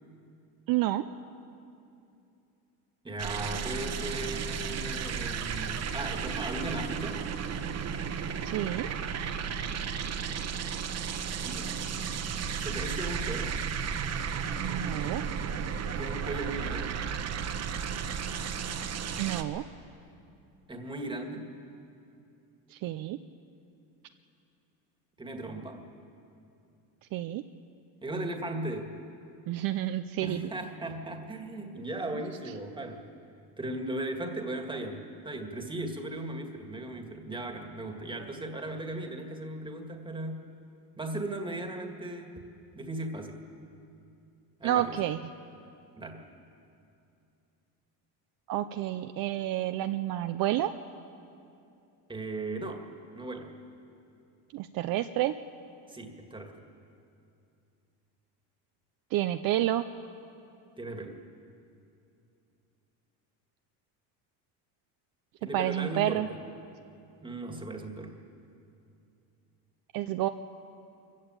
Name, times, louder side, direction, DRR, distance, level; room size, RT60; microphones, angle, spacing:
voice 1, 0.7-1.0 8.4-8.9 14.6-15.2 19.2-19.6 22.7-23.2 27.1-27.4 29.5-30.5 44.6-45.2 48.5-50.7 54.5-55.4 59.1-59.9 65.5-66.3 69.9-70.3, right 13 dB, 55° right, 9 dB, 0.7 m, -29 dB
voice 2, 3.0-7.2 11.4-12.1 12.6-13.6 16.0-17.0 20.7-21.5 25.2-25.9 28.0-29.0 30.2-33.0 33.6-40.4 41.0-42.3 42.7-43.4 44.6-45.0 46.0-46.2 52.1-52.9 53.2-53.5 55.9-56.7 60.8-61.2 65.4-66.4 67.2-68.2, right 1 dB, 10° right, 4 dB, 1.9 m, -37 dB
sound 1, 3.2-19.4, right 7 dB, 40° right, 1.1 m, -34 dB
23.5 x 15.0 x 9.0 m, 2.6 s
cardioid pair, 145°, 41 cm